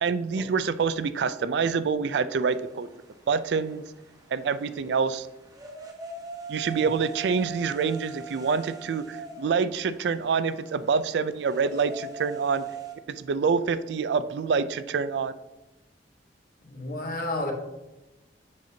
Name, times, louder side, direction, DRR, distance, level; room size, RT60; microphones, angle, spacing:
voice 1, 0.0-2.9 3.3-3.8 4.3-5.3 6.5-12.6 13.1-15.3, right 5 dB, 70° right, 14 dB, 0.3 m, -26 dB
sound 1, 2.5-12.9, right 5 dB, 20° right, 0.9 m, -42 dB
voice 2, 16.6-17.5, left 2 dB, 55° left, 2 dB, 1.2 m, -31 dB
7.5 x 5.8 x 2.7 m, 1.0 s
head